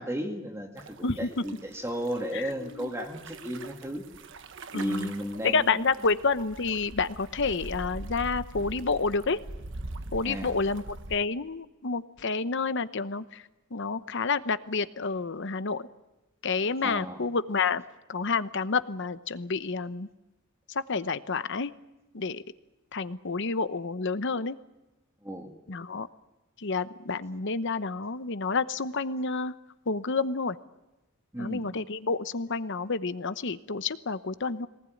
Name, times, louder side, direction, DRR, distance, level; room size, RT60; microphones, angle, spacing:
voice 1, 0.0-4.1 4.7-5.8 10.2-10.5 16.8-17.2 25.2-25.5 31.3-31.6, equal, 15° right, 2 dB, 2.1 m, -34 dB
sound 1, 0.8-11.2, right 2 dB, 60° right, 1.3 m, -43 dB
voice 2, 2.3-2.9 4.7-5.1 5.4-9.4 10.1-15.9 16.4-17.8 18.1-20.1 20.7-21.7 22.1-22.4 22.9-24.6 25.7-26.1 26.6-29.5 29.9-30.6 31.4-34.7, left 4 dB, 60° left, 13 dB, 0.9 m, -29 dB
22.5 x 19.5 x 9.2 m, 1.0 s
head